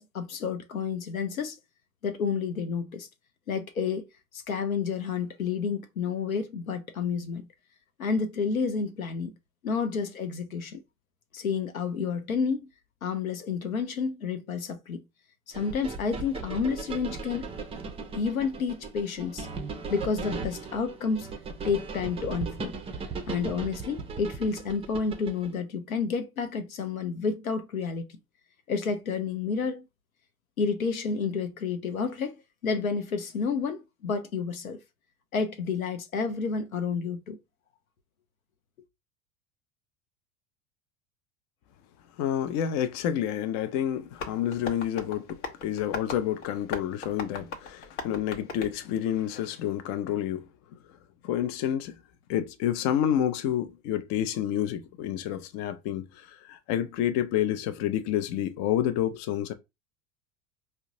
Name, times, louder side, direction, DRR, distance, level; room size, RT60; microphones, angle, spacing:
voice 1, 0.0-1.6 2.0-3.1 3.5-4.1 4.3-7.5 8.0-9.4 9.6-10.8 11.3-12.7 13.0-15.0 15.5-17.5 18.1-19.5 19.9-21.3 21.6-22.8 23.3-28.1 28.7-29.9 30.6-32.4 32.6-34.8 35.3-37.4, left 5 dB, 80° left, 0.7 m, -30 dB
sound 1, 15.5-25.5, right 4 dB, 15° right, 0.5 m, -38 dB
voice 2, 42.2-50.5 51.2-52.0 52.3-59.5, left 10 dB, 45° left, 0.6 m, -29 dB
Tap, 44.1-49.6, left 4 dB, 60° left, 1.0 m, -40 dB
4.6 x 2.2 x 2.7 m
figure-of-eight pair, 75°, 41 cm